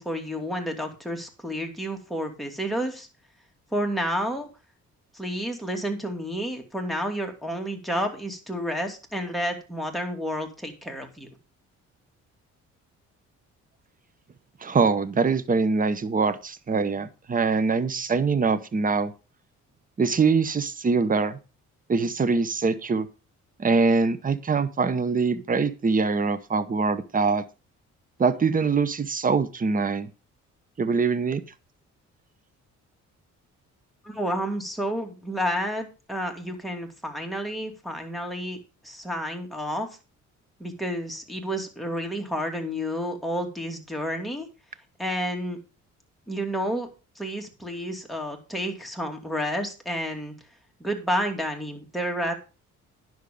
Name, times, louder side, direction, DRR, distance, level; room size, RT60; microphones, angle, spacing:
voice 1, 0.0-3.1 3.7-4.5 5.1-11.3 34.0-38.6 38.8-40.0 40.6-44.5 45.0-45.6 46.3-46.9 47.2-50.3 50.8-52.3, equal, ahead, 4 dB, 2.6 m, -30 dB
voice 2, 14.6-19.1 20.0-21.4 21.9-23.1 23.6-27.4 28.2-30.1 30.8-31.4, right 4 dB, 30° right, 13 dB, 0.9 m, -23 dB
10.5 x 6.4 x 5.2 m, 0.32 s
cardioid pair, 90°, 30 cm